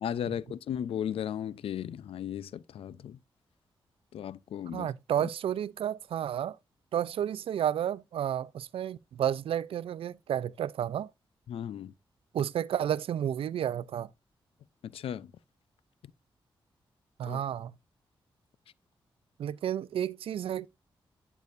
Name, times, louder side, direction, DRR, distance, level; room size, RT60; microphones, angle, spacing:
voice 1, 0.0-3.2 4.1-4.9 5.2-5.3 11.5-11.9 14.8-15.3 17.2-17.4, left 9 dB, 85° left, 0.5 m, -36 dB
voice 2, 4.7-6.6 6.9-11.1 12.3-14.1 17.2-17.7 19.4-20.7, right 10 dB, 85° right, 0.4 m, -31 dB
10.5 x 6.8 x 2.5 m
cardioid pair, 65°, 9 cm